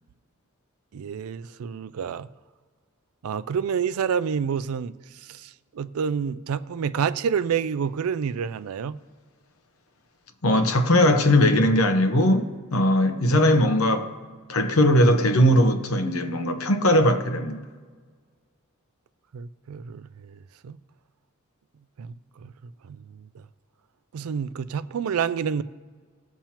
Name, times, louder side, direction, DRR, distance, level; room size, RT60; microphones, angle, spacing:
voice 1, 0.9-2.3 3.2-4.9 5.3-9.0 19.3-20.8 22.0-22.1 22.4-22.5 22.8-23.3 24.1-25.6, right 7 dB, 85° right, 0.4 m, -28 dB
voice 2, 10.4-14.1 14.5-17.6, left 1 dB, 75° left, 0.9 m, -19 dB
18.5 x 7.3 x 2.9 m
head